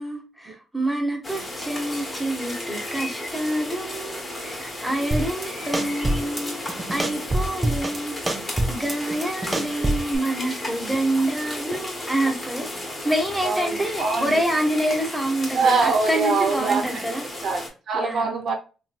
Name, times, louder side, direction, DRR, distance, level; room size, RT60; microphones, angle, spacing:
voice 1, 0.0-12.7 13.0-17.3 17.9-18.3, right 1 dB, ahead, 1.0 m, -27 dB
sound 1, 1.2-17.7, left 1 dB, 25° left, 1.2 m, -34 dB
sound 2, 5.1-5.5 5.7-6.4 6.7-8.0 8.3-10.2, right 1 dB, 20° right, 0.6 m, -25 dB
voice 2, 13.4-14.3 15.5-16.8 17.4-18.5, right 4 dB, 65° right, 0.7 m, -23 dB
3.0 x 2.8 x 2.3 m
cardioid pair, 90°, 0 cm